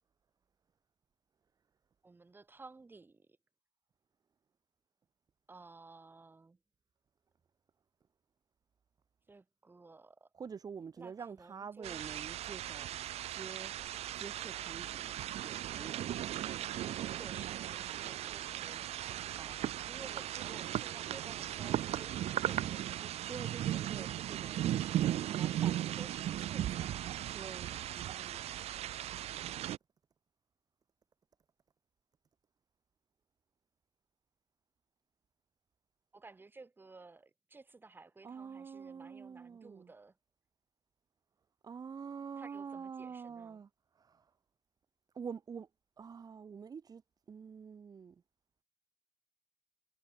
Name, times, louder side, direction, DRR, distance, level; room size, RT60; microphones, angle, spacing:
voice 1, 2.0-3.4 5.5-6.6 9.3-10.3 11.0-12.4 17.2-19.0 19.8-24.1 24.7-27.1 36.1-40.2 42.4-43.6, right 3 dB, 15° right, 6.6 m, -55 dB
voice 2, 10.3-13.7 14.2-15.1 15.4-16.0 19.3-19.6 23.3-24.6 27.3-28.6 38.2-39.9 41.6-43.7 44.0-44.3 45.1-45.7 46.0-47.0 47.3-48.2, right 6 dB, 30° right, 2.0 m, -47 dB
sound 1, 11.8-29.8, right 12 dB, 60° right, 0.5 m, -37 dB
cardioid pair, 170°, 12 cm